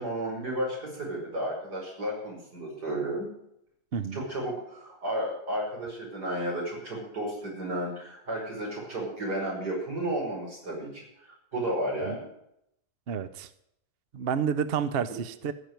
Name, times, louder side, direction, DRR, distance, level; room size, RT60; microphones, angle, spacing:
voice 1, 0.0-3.3 4.1-12.3, right 1 dB, 85° right, -2 dB, 5.8 m, -33 dB
voice 2, 3.9-4.2 12.1-12.2 13.1-13.5 14.1-15.5, right 7 dB, 50° right, 13 dB, 0.8 m, -30 dB
15.0 x 6.7 x 9.2 m, 0.76 s
omnidirectional pair, 1.7 m